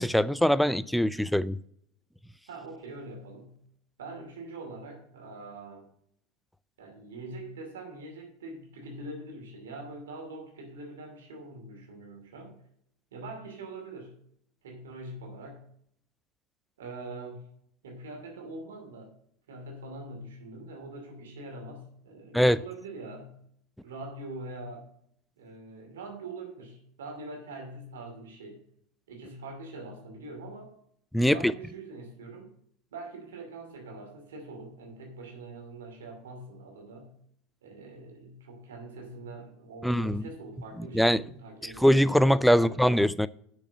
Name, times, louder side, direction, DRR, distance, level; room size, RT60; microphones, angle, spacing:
voice 1, 0.0-1.6 22.3-22.6 31.1-31.5 39.8-40.2 40.9-41.2 41.6-43.3, equal, ahead, 0.4 m, -22 dB
voice 2, 2.5-3.5 4.0-5.9 6.8-12.5 13.1-14.1 14.6-15.6 16.8-17.4 17.8-19.1 19.5-23.3 23.8-24.9 25.4-28.6 29.1-30.7 31.2-32.5 32.9-37.1 37.6-42.2 42.4-42.8, right 2 dB, 90° right, 2.5 m, -43 dB
6.5 x 6.0 x 7.2 m
hypercardioid pair, 105°, 0 cm